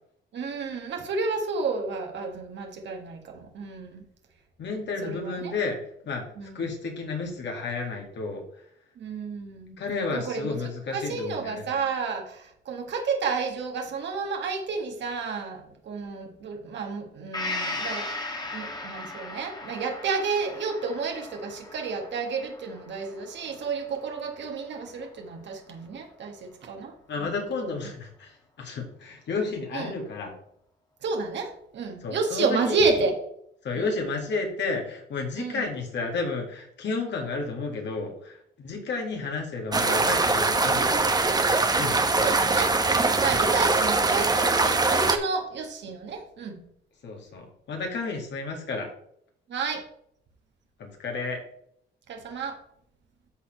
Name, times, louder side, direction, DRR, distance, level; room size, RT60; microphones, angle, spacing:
voice 1, 0.3-4.0 5.0-5.5 6.4-6.7 9.0-9.8 10.1-27.7 29.7-29.9 31.0-33.2 33.7-34.0 35.4-35.7 42.2-46.6 49.5-49.8 52.1-52.6, right 4 dB, 65° right, 3 dB, 1.8 m, -31 dB
voice 2, 4.6-5.8 6.1-6.2 6.5-8.4 9.8-11.6 27.1-28.3 28.6-30.3 32.0-33.0 33.6-41.1 41.6-42.0 47.0-48.9 50.8-51.4, left 4 dB, 65° left, 2 dB, 2.2 m, -32 dB
Gong, 17.3-25.0 25.4-25.5, left 2 dB, 20° left, 1.4 m, -37 dB
sound 1, 39.7-45.2, right 3 dB, 20° right, 0.9 m, -22 dB
12.5 x 4.2 x 3.3 m, 0.69 s
cardioid pair, 90°, 20 cm